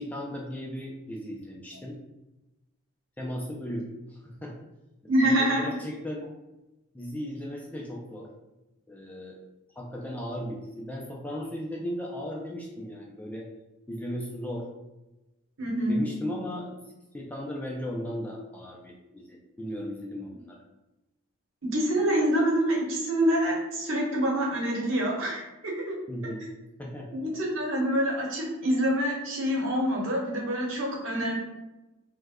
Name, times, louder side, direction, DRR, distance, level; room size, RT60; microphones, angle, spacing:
voice 1, 0.0-2.0 3.2-4.5 5.2-6.3 6.9-8.3 8.9-9.4 9.8-13.5 13.9-14.7 15.9-16.7 17.1-20.6 26.1-26.5 26.8-27.1, equal, 5° left, -2 dB, 0.3 m, -36 dB
voice 2, 5.1-5.7 15.6-16.0 21.7-25.9 27.1-31.4, equal, 65° right, -3 dB, 0.9 m, -26 dB
3.1 x 2.1 x 3.5 m, 1.0 s
head